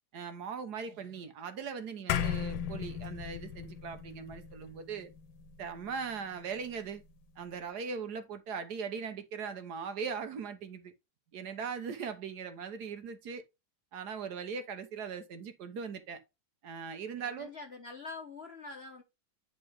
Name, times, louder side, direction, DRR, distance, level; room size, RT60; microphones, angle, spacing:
voice 1, 0.1-5.1 5.6-7.0 7.4-10.9 11.3-13.4 13.9-16.2 16.6-17.5, right 6 dB, 65° right, 1.4 m, -39 dB
sound 1, 2.1-6.7, left 9 dB, 85° left, 1.4 m, -37 dB
voice 2, 17.2-19.0, left 4 dB, 45° left, 0.8 m, -45 dB
9.7 x 3.9 x 3.5 m
omnidirectional pair, 2.0 m